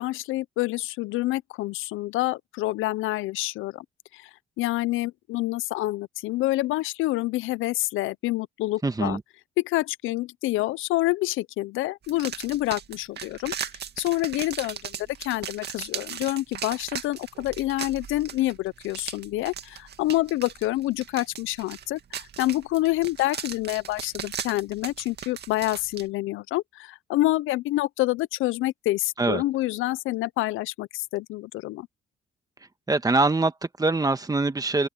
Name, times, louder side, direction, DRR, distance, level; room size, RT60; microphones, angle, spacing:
voice 1, 0.0-3.8 4.1-4.3 4.6-9.2 9.6-13.5 14.0-31.9, left 17 dB, 90° left, 0.5 m, -27 dB
voice 2, 8.8-9.2 29.2-29.4 32.9-34.9, right 3 dB, 20° right, 1.5 m, -23 dB
sound 1, 12.0-26.1, right 8 dB, 55° right, 2.2 m, -38 dB
open air
cardioid pair, 90°, 20 cm